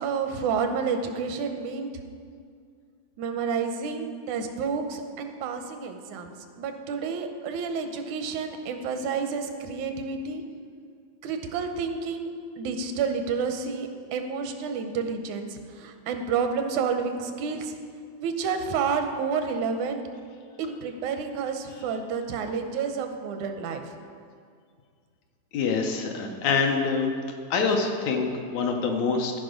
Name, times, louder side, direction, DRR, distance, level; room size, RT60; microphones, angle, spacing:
voice 1, 0.0-1.9 3.2-10.4 11.2-12.3 12.6-17.7 18.2-20.0 20.6-23.8, right 5 dB, 80° right, 6 dB, 2.1 m, -30 dB
voice 2, 25.5-27.1 27.5-29.3, left 5 dB, 75° left, 3 dB, 2.1 m, -25 dB
14.0 x 5.2 x 5.0 m, 2.2 s
omnidirectional pair, 3.3 m